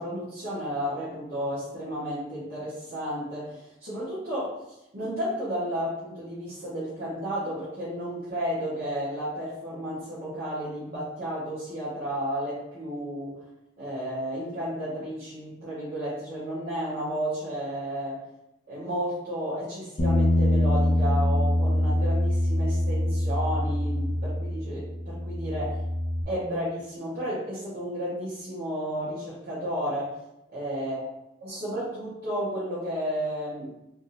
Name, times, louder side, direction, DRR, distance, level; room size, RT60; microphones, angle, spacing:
voice 1, 0.0-4.6 4.9-13.3 13.8-18.2 18.7-25.8 26.3-30.1 30.5-31.1 31.4-33.7, equal, 50° right, -11 dB, 0.9 m, -32 dB
Bass guitar, 20.0-26.2, left 1 dB, 25° left, 0.4 m, -24 dB
3.4 x 2.7 x 2.6 m, 0.89 s
head